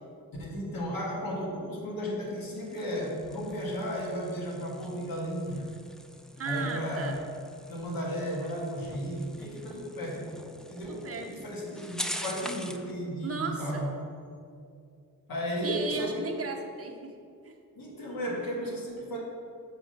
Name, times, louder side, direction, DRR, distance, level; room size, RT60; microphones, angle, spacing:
voice 1, 0.4-5.7 6.4-7.2 7.7-10.3 10.7-13.9 15.3-16.3 17.8-19.2, equal, 90° left, -3 dB, 1.8 m, -34 dB
sound 1, 2.2-12.9, equal, ahead, 0.3 m, -44 dB
voice 2, 6.4-7.2 10.8-11.3 13.2-13.8 15.6-17.5, right 4 dB, 45° right, 1 dB, 0.9 m, -36 dB
7.4 x 3.7 x 6.4 m, 2.5 s
wide cardioid pair, 115°, 34 cm